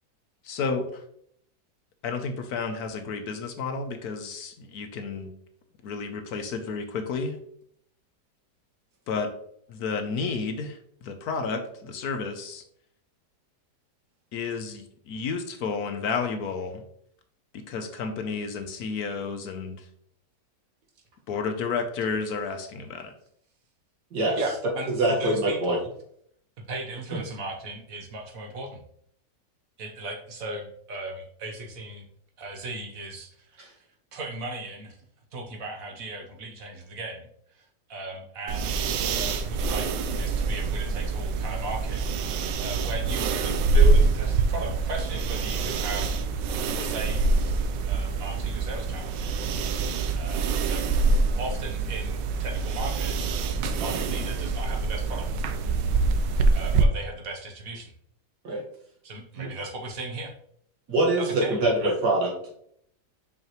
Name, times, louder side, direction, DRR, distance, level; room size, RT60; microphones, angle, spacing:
voice 1, 0.4-1.0 2.0-5.3 5.8-7.4 9.1-9.3 9.7-12.6 14.3-16.8 17.5-19.9 21.3-23.1, left 4 dB, 70° left, 6 dB, 1.1 m, -31 dB
voice 2, 24.4-25.9 26.7-28.8 29.8-32.1 32.4-33.6 34.1-35.0 35.3-37.3 37.6-39.9 40.2-42.0 42.6-46.1 46.4-47.5 47.9-49.1 50.1-55.3 56.5-57.9 59.0-60.3 61.2-61.9, right 1 dB, 55° right, 3 dB, 1.3 m, -37 dB
voice 3, 25.0-25.8 27.1-27.2 58.4-58.6 59.4-59.5 60.9-62.5, right 2 dB, 70° right, -2 dB, 2.2 m, -24 dB
sound 1, 38.5-56.8, right 4 dB, 90° right, 1.3 m, -25 dB
5.8 x 5.4 x 3.0 m, 0.67 s
omnidirectional pair, 1.9 m